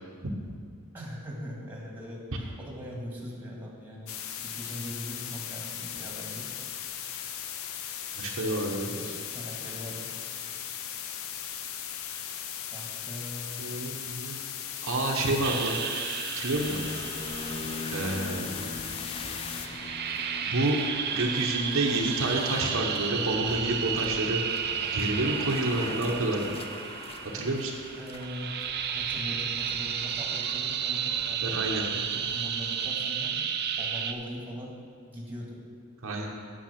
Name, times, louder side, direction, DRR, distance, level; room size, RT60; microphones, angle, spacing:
voice 1, 0.9-6.5 8.9-10.1 12.7-13.8 18.6-19.0 28.0-28.6 28.9-33.4 33.8-34.8 35.1-35.6, equal, 10° right, -3 dB, 1.9 m, -41 dB
sound 1, 4.1-19.7, left 9 dB, 65° left, 0.6 m, -38 dB
voice 2, 8.2-8.9 13.6-14.4 14.8-15.8 16.4-16.8 17.9-18.5 20.4-20.8 21.1-24.4 24.9-26.6 27.3-27.7 31.4-31.8 36.0-36.3, right 2 dB, 65° right, 0 dB, 1.0 m, -29 dB
sound 2, 15.4-34.1, right 8 dB, 50° right, 0.6 m, -33 dB
sound 3, 16.5-32.9, left 3 dB, 25° left, 0.5 m, -42 dB
9.0 x 7.3 x 5.9 m, 2.1 s
head